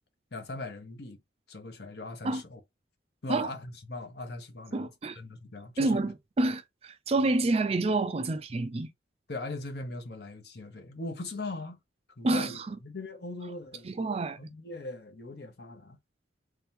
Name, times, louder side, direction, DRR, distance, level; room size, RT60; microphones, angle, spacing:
voice 1, 0.3-1.2 1.5-2.6 3.2-6.0 9.3-11.8 12.2-13.9 14.4-16.0, left 2 dB, 60° left, 1.0 m, -40 dB
voice 2, 4.7-5.2 5.8-8.9 12.2-12.5 13.9-14.4, right 2 dB, 35° right, 0.4 m, -28 dB
3.4 x 2.8 x 3.5 m
head